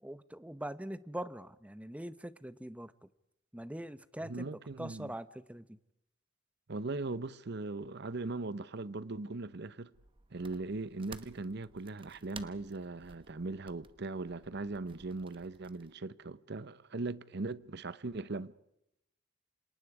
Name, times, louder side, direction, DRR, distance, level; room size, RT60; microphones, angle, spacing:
voice 1, 0.0-2.9 3.5-4.5 4.8-5.8, right 1 dB, 5° right, 0.8 m, -42 dB
voice 2, 4.2-5.1 6.7-9.9 10.3-18.5, right 3 dB, 60° right, 0.9 m, -39 dB
sound 1, 9.9-15.9, right 4 dB, 25° right, 1.1 m, -55 dB
28.5 x 26.5 x 4.9 m
head